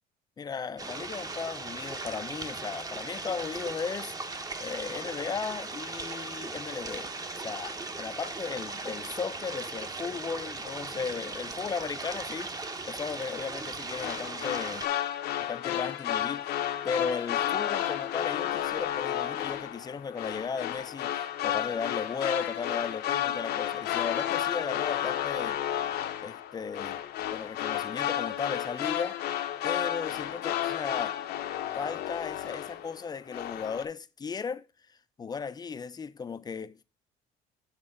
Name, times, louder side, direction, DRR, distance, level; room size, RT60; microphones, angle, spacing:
voice 1, 0.4-4.1 4.6-7.1 7.4-12.5 12.9-14.9 15.5-25.6 26.2-27.0 27.3-29.2 29.6-31.2 31.7-34.7 35.2-36.8, left 5 dB, 25° left, 0.4 m, -36 dB
sound 1, 0.8-14.9, right 3 dB, 20° right, 0.8 m, -38 dB
sound 2, 13.9-33.0 33.3-33.8, left 11 dB, 70° left, 0.7 m, -32 dB
7.4 x 3.2 x 5.4 m
cardioid pair, 110°, 17 cm